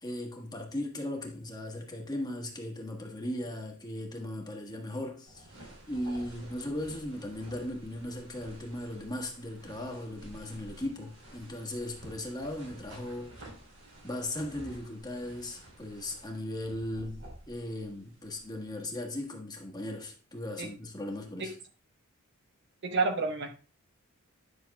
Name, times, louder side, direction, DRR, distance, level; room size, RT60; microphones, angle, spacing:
voice 1, 0.0-13.3 14.0-21.5, left 1 dB, 20° left, 1.3 m, -37 dB
sound 1, 5.3-18.6, right 1 dB, 85° right, 4.0 m, -51 dB
voice 2, 22.8-23.5, right 4 dB, 55° right, 1.0 m, -29 dB
10.0 x 6.1 x 2.3 m
head